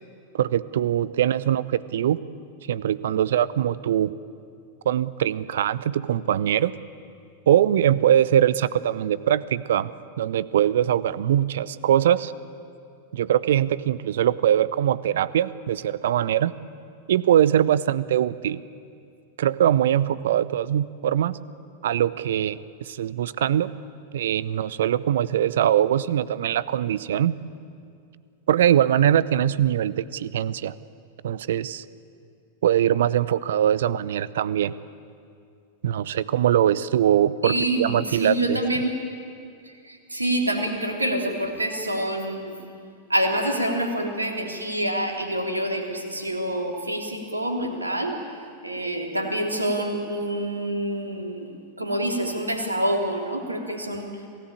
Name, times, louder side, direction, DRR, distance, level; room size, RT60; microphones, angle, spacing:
voice 1, 0.3-2.2 2.7-4.1 4.9-6.7 7.5-9.9 10.2-12.3 13.1-16.5 17.1-18.6 19.4-21.4 21.8-23.7 24.1-27.3 28.5-30.7 31.2-31.8 32.6-34.7 35.8-38.6, right 10 dB, 60° right, 18 dB, 0.7 m, -22 dB
voice 2, 37.4-38.9 40.1-42.6 43.1-48.1 48.6-51.5 51.8-54.1, right 1 dB, 80° right, 1 dB, 3.4 m, -26 dB
27.0 x 18.0 x 8.8 m, 2.3 s
figure-of-eight pair, 90°, 0 cm